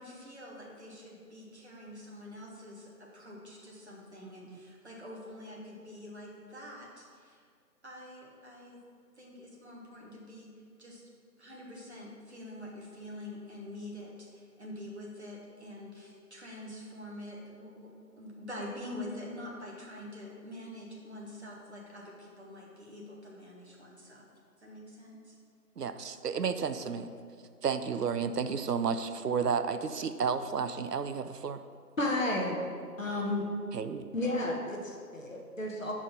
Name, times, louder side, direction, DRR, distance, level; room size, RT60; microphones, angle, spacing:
voice 1, 0.0-7.5 7.8-8.8 9.1-10.5 10.8-11.1 11.4-24.2 24.6-25.3, left 1 dB, 45° right, -3 dB, 1.3 m, -46 dB
voice 2, 4.2-4.6 25.8-27.1 27.6-31.6 33.7-34.1, right 6 dB, 75° right, 10 dB, 0.6 m, -32 dB
voice 3, 32.0-32.6 33.0-33.5 34.1-35.9, left 1 dB, 50° left, -1 dB, 1.1 m, -32 dB
5.4 x 4.8 x 5.8 m, 2.2 s
figure-of-eight pair, 170°, 49 cm